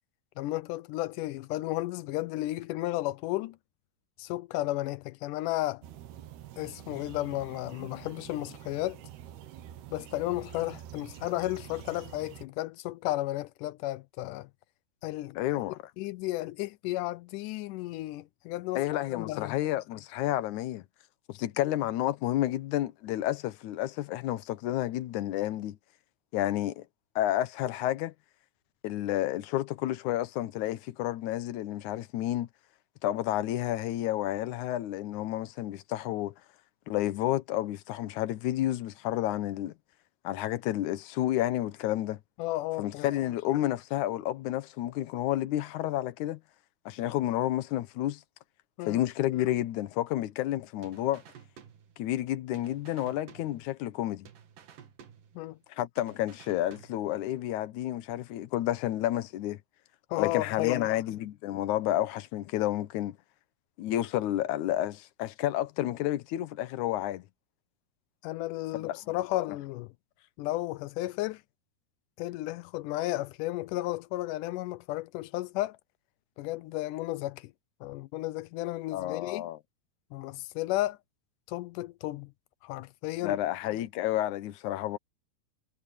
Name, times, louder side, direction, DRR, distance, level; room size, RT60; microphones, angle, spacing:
voice 1, 0.4-3.6 4.2-5.8 6.6-9.0 9.9-14.5 15.0-15.4 16.0-19.6 42.4-43.1 48.8-49.0 55.4-55.6 60.1-60.9 68.2-69.9 70.4-71.4 72.2-75.8 76.4-77.5 77.8-79.4 80.1-81.0 81.5-82.3 82.6-83.4, left 17 dB, 85° left, 1.8 m, -33 dB
sound 1, 5.8-12.4, right 12 dB, 90° right, 3.4 m, -47 dB
voice 2, 15.4-15.8 18.7-20.8 21.3-25.8 26.3-26.9 27.2-28.1 28.8-32.5 33.0-36.3 36.9-39.7 40.2-42.2 42.8-46.4 46.9-48.2 48.9-51.2 52.0-54.3 55.7-59.6 60.2-63.2 63.8-67.2 68.8-69.0 69.3-69.4 78.9-79.6 83.2-85.0, left 14 dB, 70° left, 2.0 m, -30 dB
sound 2, 50.8-52.3 52.5-54.0 54.2-55.7 56.0-57.3, right 8 dB, 60° right, 3.5 m, -53 dB
omnidirectional pair, 4.5 m